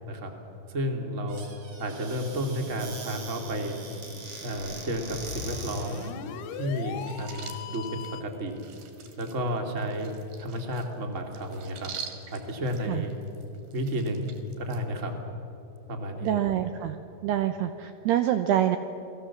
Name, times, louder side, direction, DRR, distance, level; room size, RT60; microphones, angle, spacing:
voice 1, 0.7-1.5 1.8-3.8 4.4-6.1 6.6-8.6 9.2-10.1 10.4-11.9 12.3-13.1 13.7-15.1 15.9-16.5, equal, 25° right, 3 dB, 1.7 m, -32 dB
Squeak / Cupboard open or close, 1.3-6.1, right 4 dB, 45° right, 2.3 m, -43 dB
sound 1, 4.5-8.4, left 8 dB, 70° left, 2.7 m, -39 dB
sound 2, 6.0-14.8, right 7 dB, 60° right, 3.6 m, -46 dB
voice 2, 16.2-17.0 17.2-18.8, right 11 dB, 85° right, 8 dB, 2.4 m, -26 dB
29.5 x 20.5 x 7.3 m, 2.9 s
omnidirectional pair, 5.6 m